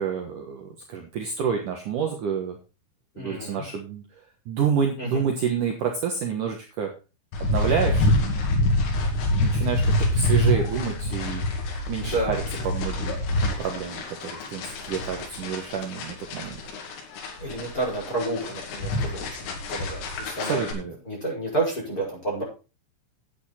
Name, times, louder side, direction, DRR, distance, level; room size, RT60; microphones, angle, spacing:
voice 1, 0.0-2.6 3.2-6.9 7.4-8.0 9.4-11.4 11.9-16.6 20.4-21.0, right 7 dB, 75° right, 3 dB, 1.9 m, -29 dB
voice 2, 3.1-3.6 5.0-5.2 12.0-12.4 17.4-20.7 21.0-22.4, right 2 dB, 20° left, -3 dB, 5.7 m, -30 dB
sound 1, 7.3-20.7, left 1 dB, 90° left, 5.1 m, -26 dB
11.0 x 8.7 x 4.2 m, 0.31 s
omnidirectional pair, 5.7 m